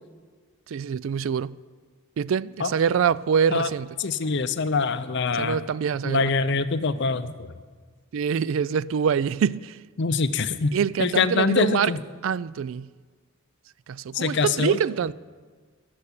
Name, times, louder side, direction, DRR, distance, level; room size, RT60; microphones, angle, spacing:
voice 1, 0.7-1.6 2.2-3.9 5.4-6.4 8.1-9.7 10.7-11.9 12.2-12.9 13.9-15.1, right 7 dB, 65° right, 0.3 m, -25 dB
voice 2, 4.0-5.6 6.0-7.3 10.0-10.7 11.0-12.0 14.1-14.8, left 4 dB, 55° left, 0.6 m, -24 dB
15.0 x 7.1 x 9.8 m
head